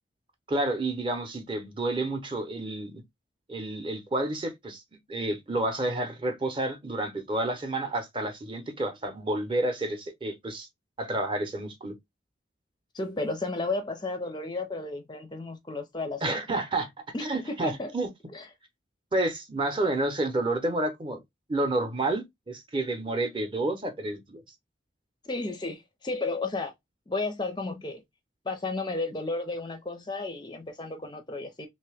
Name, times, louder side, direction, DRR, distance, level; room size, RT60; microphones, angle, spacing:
voice 1, 0.5-3.0 3.5-4.8 5.1-10.7 11.0-11.9 16.2-16.9 17.2-18.1 19.1-21.2 21.5-24.4, right 2 dB, 25° right, 0.7 m, -30 dB
voice 2, 12.9-16.4 17.1-17.9 18.3-18.5 25.2-26.7 27.1-28.0 28.5-31.7, left 3 dB, 25° left, 0.4 m, -33 dB
3.1 x 2.8 x 3.3 m
head